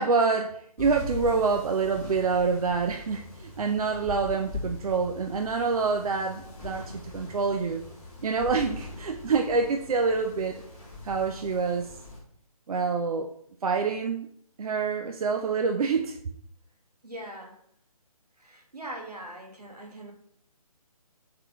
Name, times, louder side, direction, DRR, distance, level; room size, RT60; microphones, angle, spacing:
voice 1, 0.0-7.8 8.2-10.6 11.0-11.9 12.7-13.3 13.6-14.3 14.6-16.2, right 4 dB, 70° right, 5 dB, 0.4 m, -26 dB
sound 1, 0.8-12.2, left 2 dB, 10° left, 1.6 m, -41 dB
voice 2, 17.0-17.6 18.4-20.1, right 1 dB, 90° right, 2 dB, 1.1 m, -41 dB
3.8 x 3.6 x 2.8 m, 0.66 s
figure-of-eight pair, 150°, 20 cm